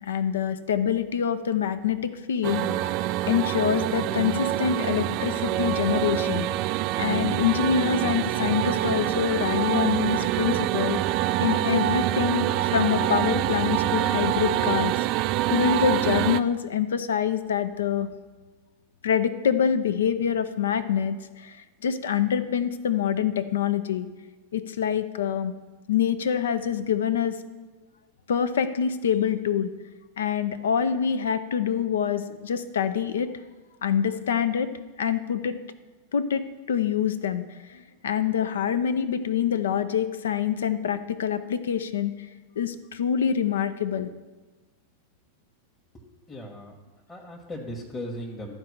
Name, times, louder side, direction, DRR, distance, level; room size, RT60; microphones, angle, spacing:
voice 1, 0.0-6.5 7.0-11.0 11.4-15.1 15.5-18.1 19.0-24.1 24.5-25.5 25.9-27.4 28.3-29.7 30.2-33.3 33.8-34.7 35.0-35.6 36.1-37.4 37.7-42.1 42.6-44.1, left 8 dB, 65° left, 13 dB, 0.6 m, -25 dB
sound 1, 2.4-16.4, right 14 dB, 40° right, 0.3 m, -25 dB
voice 2, 46.3-46.7 47.1-48.5, left 1 dB, 15° left, -3 dB, 1.3 m, -37 dB
12.5 x 4.6 x 6.7 m, 1.2 s
figure-of-eight pair, 90°, 0 cm